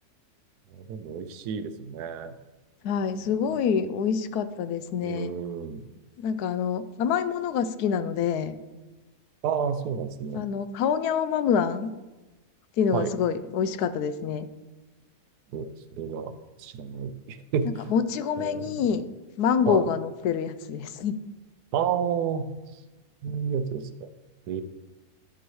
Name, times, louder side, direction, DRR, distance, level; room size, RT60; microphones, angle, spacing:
voice 1, 0.7-2.3 3.2-3.4 5.0-5.8 9.4-10.4 12.9-13.1 15.5-15.7 16.0-16.3 16.6-17.9 18.4-18.8 19.7-19.8 21.7-22.5 23.2-24.1 24.5-24.6, right 7 dB, 85° right, 11 dB, 1.2 m, -30 dB
voice 2, 2.8-5.3 6.2-8.6 10.3-11.9 12.8-14.5 17.9-19.0 19.4-21.2, left 7 dB, 80° left, 12 dB, 1.1 m, -26 dB
11.0 x 6.8 x 3.1 m, 1.1 s
omnidirectional pair, 1.6 m